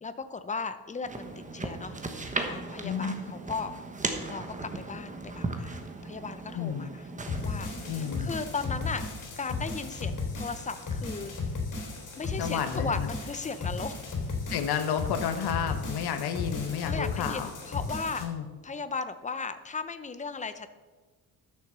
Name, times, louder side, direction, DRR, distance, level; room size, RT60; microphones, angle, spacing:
voice 1, 0.0-3.7 4.3-7.0 7.4-9.1 9.4-11.3 12.2-14.0 16.8-18.3 18.6-20.7, left 4 dB, 20° left, 11 dB, 0.7 m, -36 dB
sound 1, 1.0-8.2, right 3 dB, 20° right, 1.2 m, -37 dB
voice 2, 2.8-3.1 6.5-6.9 7.9-8.3 12.4-13.1 14.5-17.5 18.2-18.4, left 8 dB, 80° left, 7 dB, 1.1 m, -31 dB
sound 2, 7.3-18.2, left 3 dB, 50° left, 3.5 m, -35 dB
12.5 x 7.0 x 6.8 m, 1.4 s
cardioid pair, 130°, 37 cm